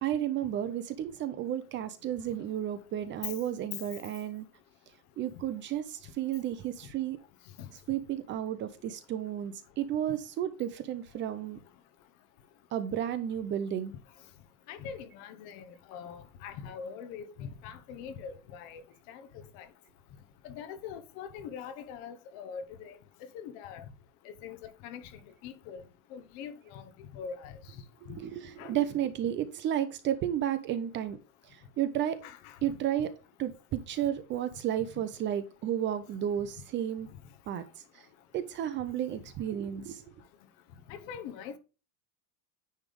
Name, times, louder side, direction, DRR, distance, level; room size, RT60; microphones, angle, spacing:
voice 1, 0.0-4.5 5.2-7.2 7.7-11.6 12.7-13.9 28.0-31.2 31.8-32.2 32.6-33.1 33.4-37.1 37.5-37.6 38.3-40.1, right 10 dB, 30° right, 0.6 m, -32 dB
voice 2, 14.7-18.8 19.1-19.2 19.5-19.7 20.4-22.9 23.3-23.8 24.2-25.0 25.4-25.8 26.1-26.8 27.1-27.6 28.1-28.2 28.6-28.7 32.2-32.6 40.9-41.6, left 7 dB, 55° left, 1.1 m, -43 dB
9.7 x 3.5 x 5.1 m
supercardioid pair, 160°, 40 cm